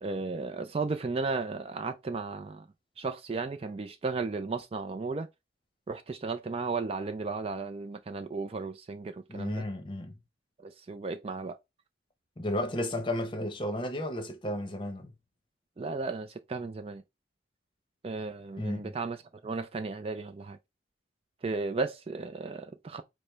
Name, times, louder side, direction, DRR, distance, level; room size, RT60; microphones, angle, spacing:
voice 1, 0.0-2.7 3.0-5.3 5.9-9.6 10.6-11.6 15.8-17.0 18.0-19.2 19.4-20.6 21.4-23.0, right 3 dB, 35° right, 0.3 m, -34 dB
voice 2, 9.3-10.2 12.4-15.1 18.6-18.9, left 1 dB, 25° left, 0.9 m, -33 dB
5.1 x 2.1 x 4.5 m
head